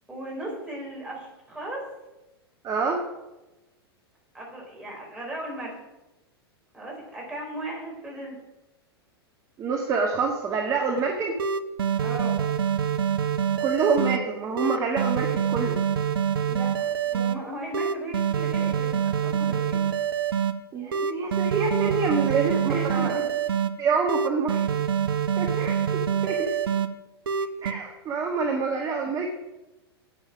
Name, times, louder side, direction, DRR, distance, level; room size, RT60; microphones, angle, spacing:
voice 1, 0.1-1.9 4.3-5.8 6.7-8.4 12.0-12.5 16.4-19.9 22.3-22.4 22.7-23.3 26.3-26.6 27.3-27.5 29.0-29.1, right 1 dB, 5° right, -3 dB, 4.9 m, -37 dB
voice 2, 2.6-3.0 9.6-11.4 13.6-15.8 20.7-23.2 23.8-24.7 25.4-26.5 27.6-29.3, right 4 dB, 25° right, 2 dB, 1.5 m, -27 dB
sound 1, 11.0-11.1 11.4-14.2 14.6-17.3 17.7-20.5 20.9-23.7 24.1-26.9 27.3-27.7, right 8 dB, 60° right, 0.8 m, -25 dB
10.0 x 8.9 x 6.2 m, 1.0 s
figure-of-eight pair, 95°, 14 cm